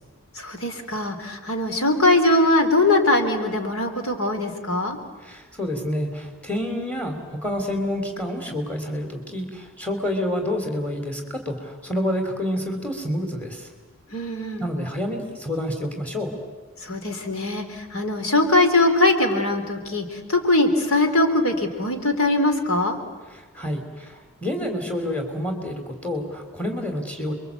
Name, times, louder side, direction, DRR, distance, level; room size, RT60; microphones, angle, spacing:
voice 1, 0.3-5.0 14.1-14.7 16.8-23.0, left 2 dB, 80° left, 5 dB, 3.4 m, -21 dB
voice 2, 5.2-13.7 14.6-16.4 23.3-27.3, left 1 dB, 5° left, 4 dB, 3.2 m, -28 dB
29.5 x 23.0 x 8.4 m, 1.3 s
head